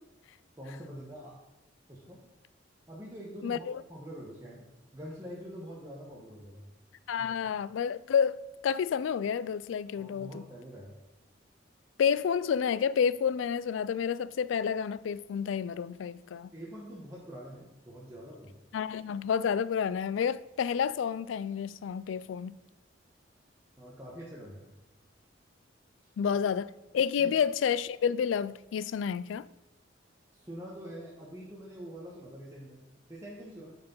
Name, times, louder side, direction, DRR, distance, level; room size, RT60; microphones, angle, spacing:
voice 1, 0.6-1.4 1.9-2.2 2.9-4.7 4.9-6.6 7.2-7.3 10.0-11.0 16.5-18.5 23.8-24.7 27.2-27.3 30.3-32.8 33.1-33.8, equal, 15° right, 1.2 m, -45 dB
voice 2, 3.4-3.8 7.1-10.4 12.0-16.5 18.7-22.5 26.2-29.5, left 7 dB, 85° left, 0.3 m, -30 dB
8.6 x 4.6 x 5.4 m
head